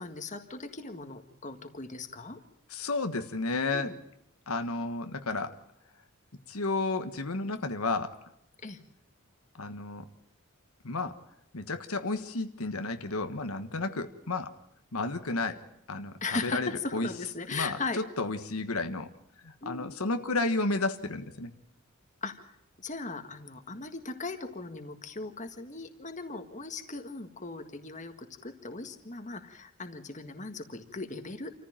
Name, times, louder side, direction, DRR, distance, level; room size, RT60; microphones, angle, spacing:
voice 1, 0.0-2.4 3.7-4.0 8.6-8.8 16.2-18.0 19.6-19.9 22.2-22.3 22.8-31.5, left 3 dB, 35° left, 6 dB, 1.7 m, -38 dB
voice 2, 2.7-3.9 4.5-5.6 6.5-8.1 9.5-10.1 10.8-11.1 11.5-14.5 14.9-15.6 15.9-17.1 17.5-19.1 19.4-21.5, left 3 dB, 90° left, 7 dB, 1.4 m, -32 dB
27.5 x 14.5 x 8.9 m, 0.78 s
head